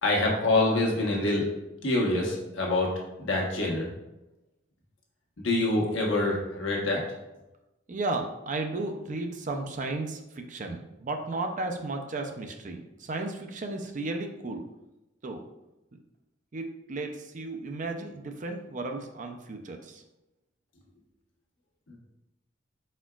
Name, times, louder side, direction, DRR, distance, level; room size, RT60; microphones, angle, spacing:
voice 1, 0.0-1.4 1.8-2.9 3.2-3.9 5.4-7.0 21.9-22.0, left 2 dB, 75° left, -2 dB, 1.2 m, -26 dB
voice 2, 7.9-12.8 13.1-14.6 15.2-15.4 16.5-17.1 17.3-19.8, right 2 dB, 40° right, 4 dB, 0.5 m, -34 dB
4.7 x 4.3 x 2.3 m, 0.97 s
head